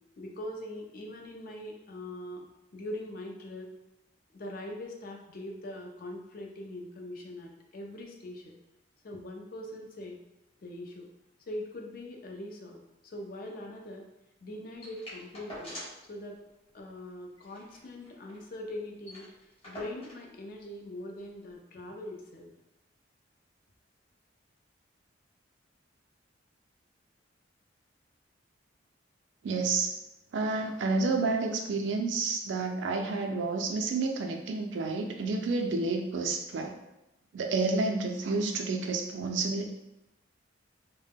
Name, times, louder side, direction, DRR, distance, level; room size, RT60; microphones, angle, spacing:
voice 1, 0.2-2.5 2.7-3.7 4.3-8.5 9.0-10.2 10.6-11.1 11.4-14.0 14.4-15.7 16.1-16.4 16.7-22.5, left 1 dB, 50° left, 1 dB, 0.4 m, -42 dB
sound 1, 14.8-16.1 16.4-16.5 16.8-17.0 17.4-18.5 18.7-18.8 19.0-20.3 21.2-21.3, equal, 30° left, 0.8 m, -45 dB
voice 2, 29.4-29.9 30.3-36.8 37.3-39.7, right 3 dB, 70° right, 3 dB, 0.4 m, -30 dB
2.1 x 2.0 x 3.4 m, 0.91 s
head